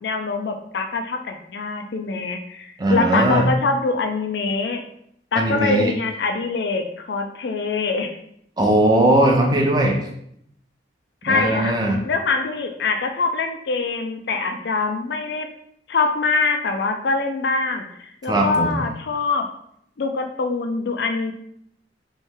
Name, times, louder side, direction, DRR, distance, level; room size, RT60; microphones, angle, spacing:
voice 1, 0.0-4.8 5.3-8.2 11.2-11.7 12.0-15.5 15.9-19.4 20.0-21.3, left 4 dB, 65° left, 6 dB, 0.4 m, -24 dB
voice 2, 2.8-3.5 5.3-5.9 8.6-10.0 11.3-12.0 18.3-18.8, right 1 dB, 25° right, 0 dB, 0.5 m, -19 dB
3.1 x 3.1 x 3.5 m, 0.71 s
head